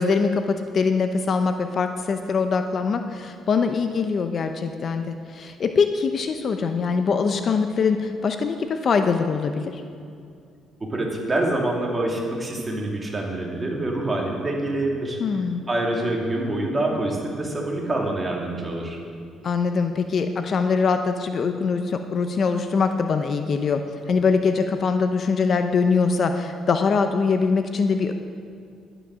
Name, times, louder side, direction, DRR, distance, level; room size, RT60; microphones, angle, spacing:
voice 1, 0.0-9.8 15.2-15.6 19.4-23.8 24.1-28.1, left 5 dB, 45° left, 7 dB, 0.7 m, -23 dB
voice 2, 10.8-15.2 15.7-19.0, right 1 dB, 20° right, -1 dB, 2.5 m, -26 dB
11.5 x 9.9 x 6.2 m, 2.4 s
cardioid pair, 125°, 0 cm